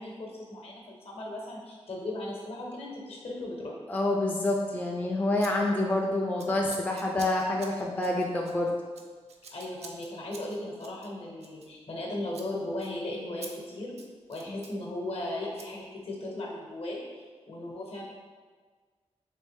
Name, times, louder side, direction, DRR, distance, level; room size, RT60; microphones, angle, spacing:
voice 1, 0.0-3.8 9.5-14.0 14.3-18.0, left 1 dB, 60° left, -2 dB, 0.8 m, -37 dB
voice 2, 3.9-8.7 14.5-14.6, left 2 dB, 15° left, -1 dB, 0.3 m, -27 dB
Scissors, 4.4-4.6 5.4-5.5 5.8-6.0 6.4-12.0 12.3-12.5 12.8-12.9 13.4-13.5 13.8-14.8 15.6-15.7, right 4 dB, 70° right, 0.4 m, -48 dB
3.2 x 3.2 x 3.4 m, 1.5 s
wide cardioid pair, 130°, 11 cm